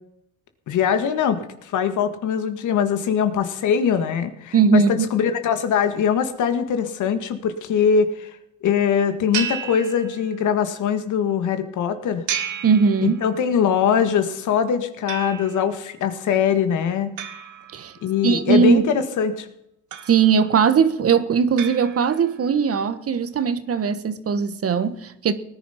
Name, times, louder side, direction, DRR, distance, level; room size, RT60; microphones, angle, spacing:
voice 1, 0.7-8.4 8.6-12.2 13.0-17.1 18.0-19.5, left 7 dB, 75° left, 1.8 m, -22 dB
voice 2, 4.5-5.1 12.6-13.2 17.7-17.9 18.2-18.8 20.1-25.3, right 6 dB, 50° right, 1.4 m, -19 dB
sound 1, 9.3-10.6 12.3-13.6 15.1-15.8 17.2-18.3 19.9-20.6 21.6-22.5, right 9 dB, 80° right, 2.0 m, -33 dB
18.5 x 10.5 x 5.8 m
cardioid pair, 90°, 30 cm